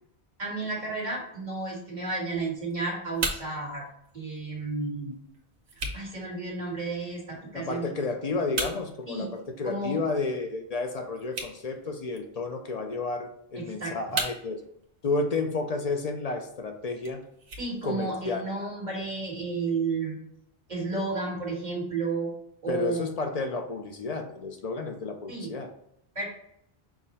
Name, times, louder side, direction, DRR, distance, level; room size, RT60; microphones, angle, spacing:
voice 1, 0.4-3.8 4.1-5.1 5.9-7.8 9.1-9.3 9.6-10.0 13.5-14.2 17.6-20.2 20.7-22.3 22.6-23.0 25.3-25.5 26.1-26.2, right 3 dB, 45° right, -4 dB, 1.6 m, -32 dB
sound 1, 2.3-18.3, right 2 dB, 90° right, 1.1 m, -41 dB
voice 2, 7.5-14.6 15.0-17.2 17.8-18.4 22.7-25.7, left 3 dB, 55° left, 5 dB, 0.5 m, -31 dB
5.8 x 2.1 x 4.0 m, 0.74 s
omnidirectional pair, 1.1 m